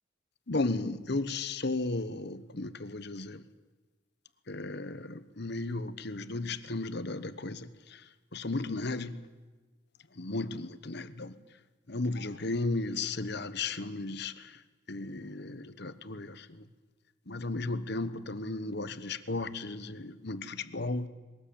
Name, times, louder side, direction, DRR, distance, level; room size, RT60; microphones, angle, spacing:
voice 1, 0.5-3.4 4.5-8.0 8.3-9.2 10.2-11.4 11.9-14.6 14.9-16.7 17.3-21.1, left 2 dB, 55° left, 13 dB, 1.1 m, -35 dB
21.5 x 18.5 x 8.7 m, 1.3 s
head